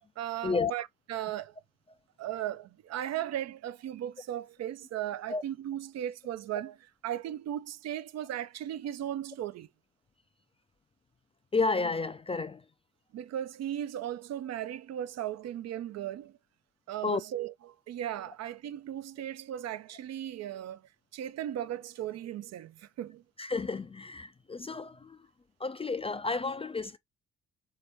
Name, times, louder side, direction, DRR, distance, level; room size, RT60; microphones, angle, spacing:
voice 1, 0.2-1.5 2.2-6.8 7.0-9.7 13.1-16.4 16.9-17.5 17.9-20.8 21.1-23.2, right 11 dB, 55° right, 0.5 m, -36 dB
voice 2, 11.5-12.6 17.0-17.2 23.4-25.2 25.6-27.0, left 4 dB, 20° left, 0.3 m, -31 dB
3.3 x 2.8 x 2.9 m
hypercardioid pair, 50°, 33 cm